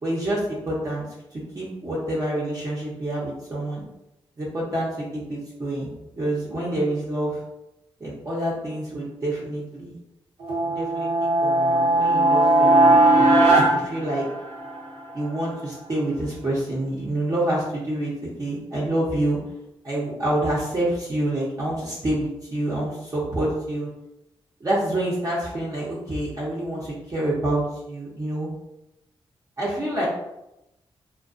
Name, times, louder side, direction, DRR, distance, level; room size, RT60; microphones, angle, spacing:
voice 1, 0.0-1.1 1.3-3.8 4.4-7.4 8.0-10.0 10.7-13.0 13.5-14.3 15.1-18.1 18.4-19.4 19.8-23.9 24.6-28.5 29.6-30.1, right 1 dB, 35° right, -7 dB, 0.7 m, -27 dB
sound 1, 10.4-14.8, right 2 dB, 80° right, 0.7 m, -18 dB
2.3 x 2.2 x 2.5 m, 0.89 s
cardioid pair, 75°, 10 cm